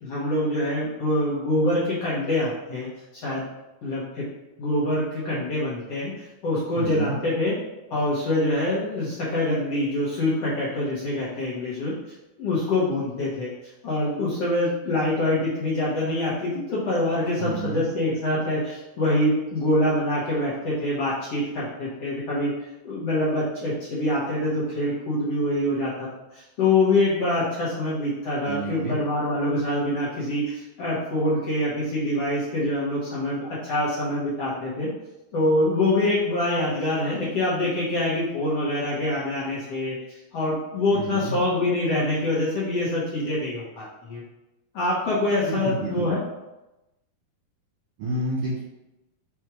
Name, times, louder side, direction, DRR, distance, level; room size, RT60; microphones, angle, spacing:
voice 1, 0.0-2.9 3.1-3.4 3.8-4.2 4.6-6.1 6.4-7.6 7.9-11.9 12.4-13.5 13.8-22.5 22.8-34.9 35.3-44.2 44.7-46.2, left 1 dB, 60° left, -7 dB, 1.7 m, -25 dB
voice 2, 6.8-7.2 17.4-17.8 28.4-29.0 40.9-41.4 45.5-46.1 48.0-48.6, right 2 dB, 55° right, -6 dB, 1.8 m, -29 dB
6.0 x 4.3 x 4.8 m, 0.98 s
omnidirectional pair, 4.3 m